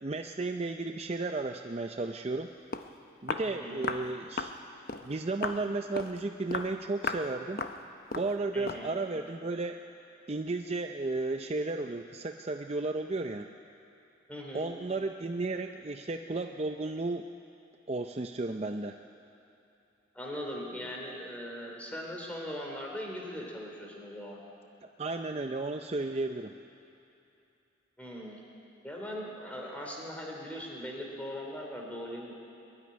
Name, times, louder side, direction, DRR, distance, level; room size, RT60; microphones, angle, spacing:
voice 1, 0.0-2.5 3.2-4.5 5.0-7.6 8.1-9.8 10.3-13.5 14.5-17.3 17.9-19.0 25.0-26.6, right 3 dB, 30° right, 5 dB, 0.5 m, -33 dB
Walk footsteps, 2.4-2.5 2.7-2.9 3.3-3.5 3.8-4.1 4.4-4.6 4.9-5.1 5.4-5.6 6.0-6.2 6.5-6.7 7.0-7.3 7.6-7.8 8.1-8.3 8.7-8.9, left 4 dB, 50° left, 0.8 m, -35 dB
voice 2, 3.4-3.9 8.5-8.9 14.3-14.7 20.1-24.4 28.0-28.4 28.8-32.3, equal, 5° left, -1 dB, 3.2 m, -40 dB
22.0 x 12.5 x 9.8 m, 2.8 s
head